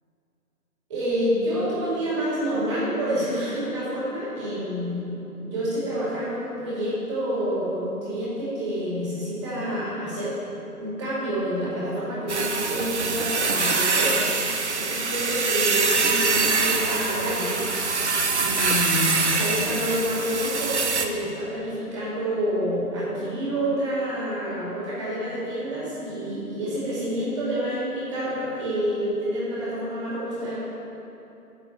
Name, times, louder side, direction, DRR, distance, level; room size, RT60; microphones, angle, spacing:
voice 1, 0.9-10.3 10.8-14.3 14.7-17.6 18.4-30.5, equal, 20° right, -9 dB, 2.5 m, -28 dB
sound 1, 12.3-21.1, right 4 dB, 45° right, 0.7 m, -24 dB
7.8 x 6.3 x 7.7 m, 2.9 s
figure-of-eight pair, 145°, 46 cm